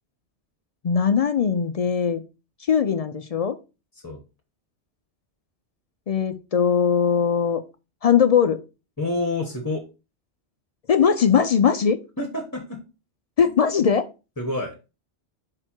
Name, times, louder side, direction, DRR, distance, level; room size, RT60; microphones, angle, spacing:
voice 1, 0.8-2.2 2.7-3.5 6.1-7.6 8.0-8.6 10.9-12.0 13.4-14.1, left 7 dB, 60° left, 11 dB, 0.4 m, -20 dB
voice 2, 9.0-9.8 12.2-12.8 13.4-13.5 14.4-14.7, left 2 dB, 20° left, 2 dB, 1.1 m, -28 dB
5.3 x 4.4 x 4.4 m, 0.30 s
omnidirectional pair, 1.2 m